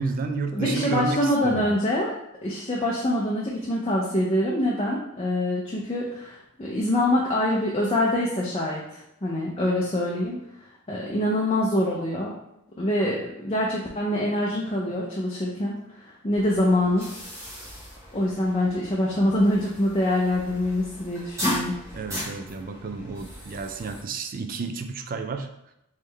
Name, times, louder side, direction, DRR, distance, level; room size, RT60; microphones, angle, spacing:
voice 1, 0.0-1.7 21.9-25.5, right 4 dB, 40° right, 7 dB, 0.3 m, -31 dB
voice 2, 0.5-2.1 2.4-10.4 10.9-12.4 12.8-17.1 18.1-21.8, left 1 dB, 25° left, -4 dB, 0.5 m, -25 dB
sound 1, 16.3-24.0, equal, 15° right, 1.0 m, -36 dB
3.6 x 3.1 x 3.3 m, 0.83 s
head